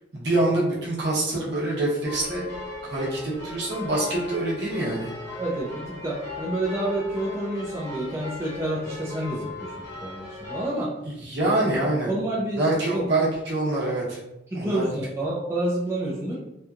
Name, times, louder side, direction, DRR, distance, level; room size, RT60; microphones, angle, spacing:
voice 1, 0.1-2.5 2.8-5.1 11.0-12.1 12.6-14.2 14.5-14.9, right 2 dB, 60° right, -5 dB, 0.8 m, -25 dB
sound 1, 2.0-10.7, left 3 dB, 60° left, 1.0 m, -38 dB
voice 2, 5.4-9.7 10.0-10.9 11.4-11.5 12.1-12.7 12.9-13.1 14.5-16.4, right 1 dB, 15° right, -5 dB, 0.3 m, -29 dB
2.8 x 2.2 x 2.4 m, 0.86 s
head